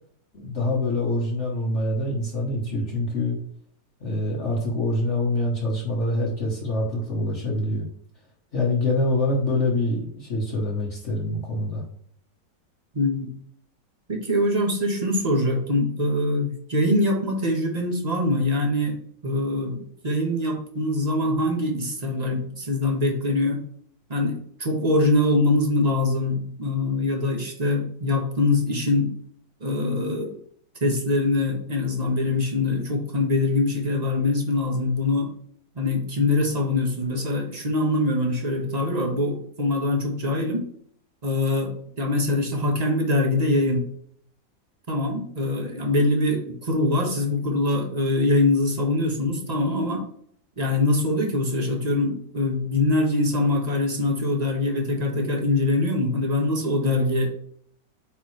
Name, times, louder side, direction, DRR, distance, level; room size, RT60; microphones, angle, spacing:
voice 1, 0.3-3.4 4.0-7.9 8.5-11.8, left 2 dB, 45° left, -2 dB, 1.4 m, -25 dB
voice 2, 12.9-13.3 14.1-19.0 19.2-23.6 24.1-29.1 29.6-30.4 30.8-35.3 35.7-40.6 41.2-43.8 44.9-50.0 50.6-57.3, left 2 dB, 25° right, 2 dB, 1.1 m, -23 dB
8.4 x 4.0 x 3.2 m, 0.62 s
omnidirectional pair, 1.9 m